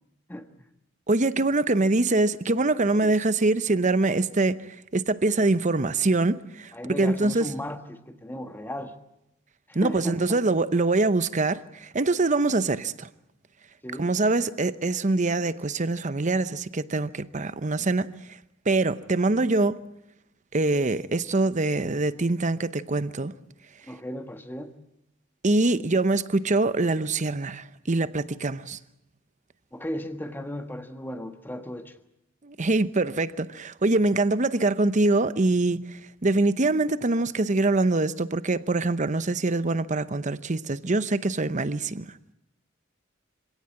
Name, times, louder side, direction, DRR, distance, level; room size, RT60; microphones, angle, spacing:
voice 1, 0.3-0.6 3.0-3.1 6.7-9.0 9.7-10.4 13.8-14.1 23.9-24.7 29.7-32.0, equal, 10° left, 1.5 m, -36 dB
voice 2, 1.1-4.6 4.9-6.7 7.0-7.5 9.7-13.1 14.0-18.1 18.7-19.8 20.5-23.3 25.4-28.8 32.4-42.1, right 2 dB, 40° right, 0.8 m, -24 dB
25.5 x 17.5 x 8.8 m
head